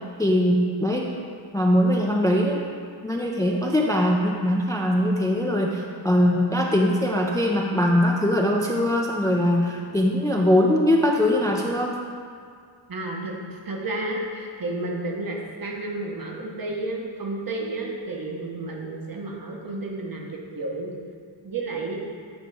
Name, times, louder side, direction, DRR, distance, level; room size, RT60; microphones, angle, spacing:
voice 1, 0.2-1.1 1.5-2.6 3.0-11.9, left 1 dB, 10° left, 0 dB, 0.4 m, -21 dB
voice 2, 12.9-13.3 13.6-20.9 21.4-22.0, right 2 dB, 45° right, -1 dB, 0.9 m, -31 dB
7.9 x 2.8 x 4.7 m, 2.1 s
wide cardioid pair, 65°, 47 cm